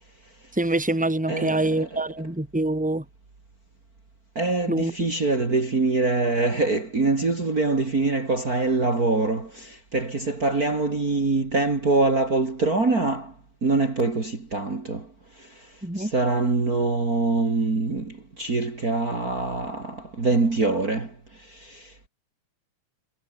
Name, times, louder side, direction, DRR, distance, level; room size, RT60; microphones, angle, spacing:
voice 1, 0.5-3.0 4.7-4.9 15.8-16.1, right 2 dB, ahead, 3.7 m, -25 dB
voice 2, 1.3-2.0 4.3-13.3 13.6-22.1, right 3 dB, 30° right, 3.3 m, -24 dB
omnidirectional pair, 3.4 m